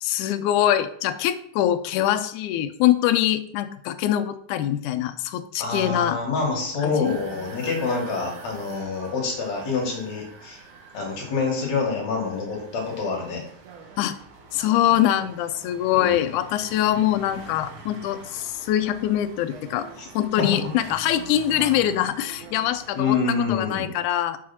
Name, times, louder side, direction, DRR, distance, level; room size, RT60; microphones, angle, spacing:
voice 1, 0.0-6.2 6.8-7.2 14.0-14.2 14.5-19.9 20.1-23.2 23.5-24.4, left 12 dB, 85° left, 10 dB, 1.7 m, -23 dB
voice 2, 5.6-10.6 10.9-13.4 15.9-16.2 20.0-20.1 20.4-20.5 22.9-23.9, left 4 dB, 55° left, -1 dB, 2.8 m, -26 dB
sound 1, 7.0-23.0, right 4 dB, 65° right, 2.7 m, -45 dB
6.3 x 4.7 x 5.8 m, 0.65 s
omnidirectional pair, 4.0 m